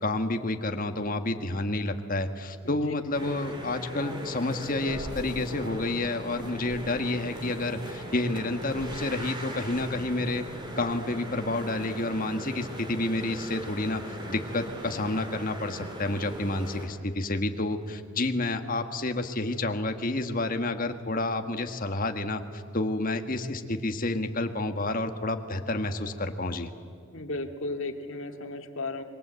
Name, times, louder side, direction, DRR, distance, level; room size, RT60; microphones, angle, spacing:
voice 1, 0.0-10.4 10.8-26.7, left 2 dB, 40° left, 6 dB, 1.5 m, -30 dB
voice 2, 2.6-2.9 27.1-29.0, left 2 dB, 60° left, 3 dB, 2.2 m, -35 dB
sound 1, 3.1-16.9, right 1 dB, 20° right, 2.8 m, -39 dB
26.5 x 23.5 x 8.2 m, 2.6 s
head